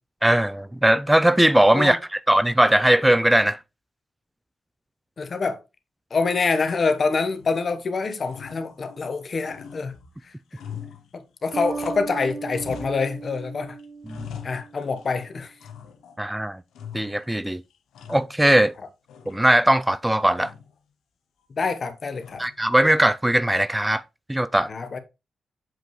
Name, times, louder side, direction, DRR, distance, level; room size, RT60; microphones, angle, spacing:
voice 1, 0.2-3.6 14.1-14.2 16.2-16.6 16.9-17.6 18.1-18.7 19.3-20.5 22.4-24.0 24.3-24.7, right 1 dB, 10° right, 0.4 m, -19 dB
voice 2, 5.2-5.6 6.1-9.9 11.1-13.8 14.4-15.5 21.6-22.4 24.7-25.0, left 4 dB, 55° left, 1.0 m, -26 dB
sound 1, 7.3-7.9 8.2-9.2 9.4-12.2 12.5-13.5 13.8-15.2 15.6-16.3 16.7-17.4 17.7-18.8 19.1-19.8 20.4-20.8 22.2-22.7, left 8 dB, 85° left, 0.9 m, -43 dB
Bass guitar, 11.5-15.1, right 4 dB, 55° right, 0.6 m, -36 dB
7.5 x 5.1 x 3.1 m
supercardioid pair, 50°, 0 cm